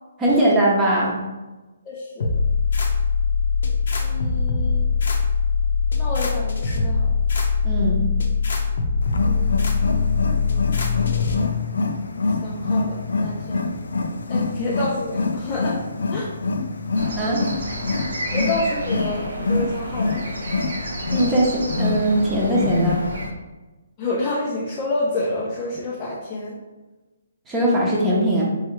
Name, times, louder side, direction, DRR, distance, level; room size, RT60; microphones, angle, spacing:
voice 1, 0.2-1.2 7.6-8.0 17.1-17.4 21.1-23.1 27.5-28.4, right 1 dB, 10° right, -5 dB, 0.9 m, -20 dB
voice 2, 1.8-2.3 4.0-4.9 6.0-7.2 9.2-11.0 12.4-13.7 14.3-15.8 16.1-16.3 18.3-20.2 24.0-26.6, left 2 dB, 20° left, -6 dB, 0.6 m, -29 dB
sound 1, 2.2-11.4, left 4 dB, 70° left, 0.8 m, -22 dB
Wild animals, 9.0-23.3, left 3 dB, 85° left, 0.4 m, -26 dB
sound 2, 17.0-23.3, right 1 dB, 90° right, 1.3 m, -32 dB
4.5 x 3.1 x 3.2 m, 1.2 s
hypercardioid pair, 160°, 0 cm